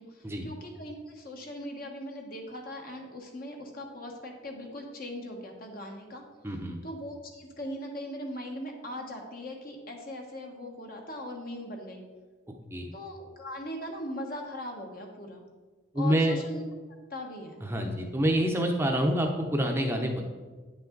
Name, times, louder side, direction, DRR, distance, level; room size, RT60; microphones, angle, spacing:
voice 1, 0.0-6.2 6.8-12.0 12.9-15.4 15.9-16.6 17.1-17.6, left 1 dB, 50° left, 2 dB, 1.3 m, -39 dB
voice 2, 6.4-6.8 12.7-12.9 15.9-16.4 17.6-20.2, equal, 15° right, 2 dB, 0.7 m, -27 dB
9.7 x 5.8 x 3.9 m, 1.3 s
head